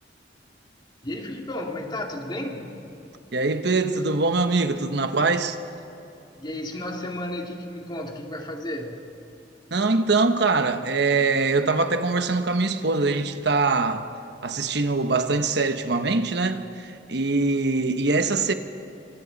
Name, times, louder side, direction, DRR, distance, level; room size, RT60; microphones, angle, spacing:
voice 1, 1.0-2.8 6.4-9.1, left 1 dB, 25° left, 2.6 m, -33 dB
voice 2, 3.3-5.6 9.7-14.1 14.4-18.5, right 3 dB, 70° right, 1.1 m, -23 dB
27.0 x 26.5 x 4.1 m
head